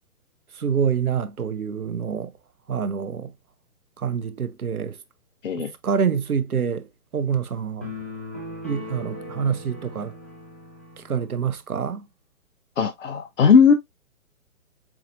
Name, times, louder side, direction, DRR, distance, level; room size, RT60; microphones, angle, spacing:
voice 1, 0.6-2.3 2.7-3.3 4.0-5.0 5.6-6.9 7.1-7.9 8.6-10.1 11.0-12.1, right 7 dB, 80° right, 0.8 m, -26 dB
sound 1, 7.8-11.3, left 2 dB, 10° left, 0.4 m, -38 dB
voice 2, 12.8-13.7, left 6 dB, 55° left, 0.9 m, -17 dB
7.2 x 2.7 x 2.5 m
figure-of-eight pair, 125°, 43 cm